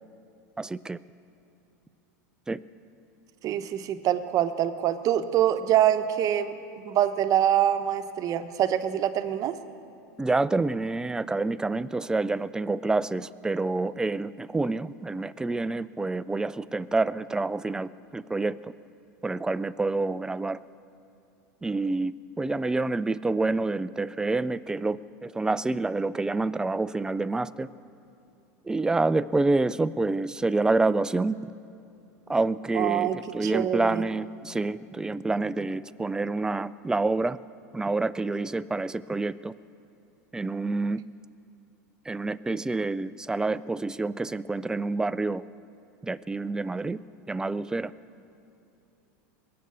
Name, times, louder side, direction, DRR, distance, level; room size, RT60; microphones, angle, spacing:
voice 1, 0.6-1.0 2.5-2.6 10.2-18.7 19.2-20.6 21.6-27.7 28.7-31.4 32.3-37.4 37.7-39.5 40.3-41.0 42.1-45.4 46.0-47.0 47.3-47.9, right 3 dB, 10° right, 16 dB, 0.3 m, -28 dB
voice 2, 3.4-6.5 6.8-9.5 32.7-33.2 33.4-34.0, right 11 dB, 40° right, 10 dB, 0.9 m, -25 dB
21.5 x 8.7 x 6.8 m, 2.7 s
supercardioid pair, 115°, 9 cm